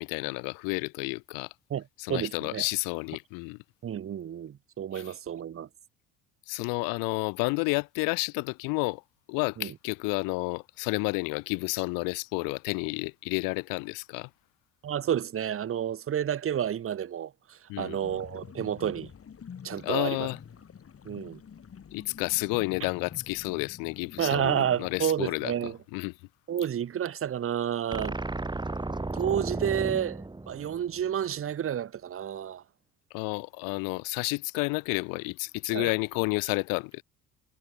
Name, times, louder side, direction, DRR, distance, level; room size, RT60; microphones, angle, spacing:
voice 1, 0.0-1.5 2.0-3.6 4.9-5.1 6.5-9.0 9.3-14.3 17.7-18.0 19.8-20.4 21.9-25.5 25.9-26.1 33.1-37.0, left 30 dB, 55° left, 0.8 m, -30 dB
voice 2, 2.1-2.6 3.8-5.7 9.6-9.7 14.8-19.1 19.6-20.3 21.0-21.4 24.2-25.8 26.5-28.2 29.1-32.6 35.7-35.9, right 9 dB, 35° right, 1.5 m, -30 dB
sound 1, 18.0-25.0, left 7 dB, 35° left, 5.2 m, -47 dB
sound 2, 27.9-31.2, right 2 dB, 10° right, 2.7 m, -34 dB
figure-of-eight pair, 55°, 39 cm